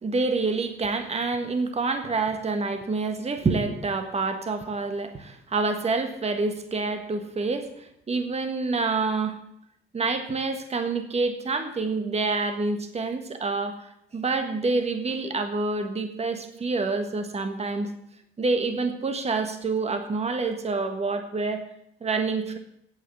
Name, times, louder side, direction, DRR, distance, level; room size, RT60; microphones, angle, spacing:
voice 1, 0.0-9.4 9.9-17.9 18.4-21.6 22.0-22.6, right 3 dB, 30° right, 7 dB, 1.5 m, -27 dB
8.7 x 8.3 x 8.4 m, 0.76 s
cardioid pair, 90°, 20 cm